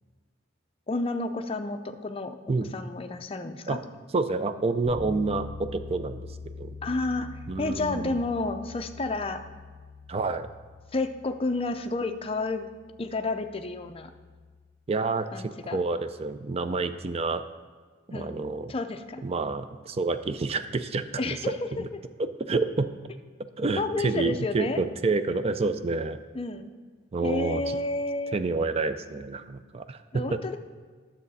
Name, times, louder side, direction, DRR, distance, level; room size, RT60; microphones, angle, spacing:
voice 1, 0.9-2.4 2.7-3.8 6.8-9.4 10.9-12.7 13.0-14.1 15.3-15.8 18.1-18.4 18.7-19.2 21.2-21.8 23.8-24.9 26.3-26.7 27.2-28.4 30.1-30.6, left 2 dB, 30° left, 7 dB, 0.5 m, -30 dB
voice 2, 4.1-6.7 7.5-8.2 10.1-10.5 14.9-17.4 18.1-18.7 19.2-21.4 21.8-21.9 22.4-22.9 23.6-26.2 27.1-27.8 28.3-30.4, right 3 dB, 30° right, 11 dB, 0.4 m, -28 dB
Bass guitar, 4.8-14.6, left 3 dB, 50° right, 2.4 m, -44 dB
10.0 x 7.3 x 4.1 m, 1.5 s
head